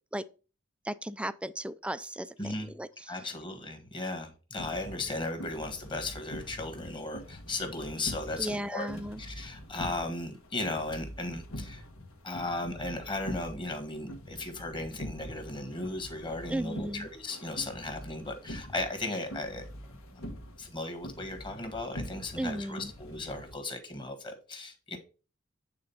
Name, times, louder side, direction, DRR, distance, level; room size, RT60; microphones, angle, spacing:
voice 1, 0.8-2.3 2.7-2.9 8.4-9.2 16.5-17.1 22.4-22.9, right 1 dB, 5° right, 0.3 m, -35 dB
voice 2, 2.4-2.7 3.1-8.9 9.2-11.8 12.2-19.6 20.1-20.2 20.6-25.0, left 2 dB, 25° left, 1.5 m, -36 dB
sound 1, 4.6-23.6, equal, 80° left, 1.6 m, -44 dB
8.6 x 3.9 x 5.5 m
head